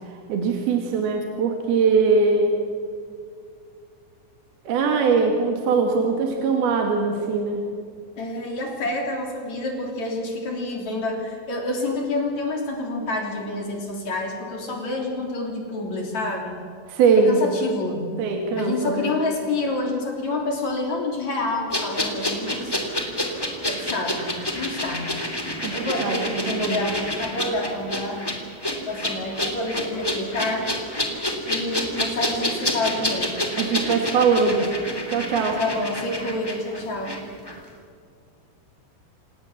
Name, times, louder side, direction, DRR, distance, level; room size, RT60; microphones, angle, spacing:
voice 1, 0.1-2.6 4.7-7.7 16.9-17.5 18.2-19.1 25.6-26.9 33.5-34.7 35.1-35.6, right 4 dB, 55° right, 2 dB, 3.4 m, -21 dB
voice 2, 8.2-16.6 17.2-18.2 18.6-22.8 23.7-24.2 24.5-25.2 25.7-28.2 28.8-30.7 31.5-33.4 35.6-37.2, left 2 dB, 40° left, 1 dB, 3.9 m, -28 dB
sound 1, 21.7-37.2 37.4-37.6, left 1 dB, 15° left, 0.9 m, -28 dB
29.0 x 18.0 x 7.4 m, 2.2 s
omnidirectional pair, 5.9 m